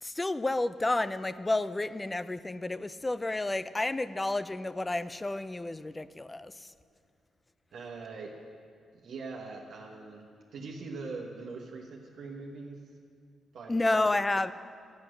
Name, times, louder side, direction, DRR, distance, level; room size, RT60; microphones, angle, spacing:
voice 1, 0.0-6.7 13.7-14.5, left 2 dB, 15° left, 15 dB, 0.3 m, -30 dB
voice 2, 7.7-8.4 8.9-12.8 13.5-14.1, right 3 dB, 65° right, -1 dB, 1.2 m, -42 dB
12.0 x 9.4 x 6.3 m, 2.3 s
cardioid pair, 125°, 0 cm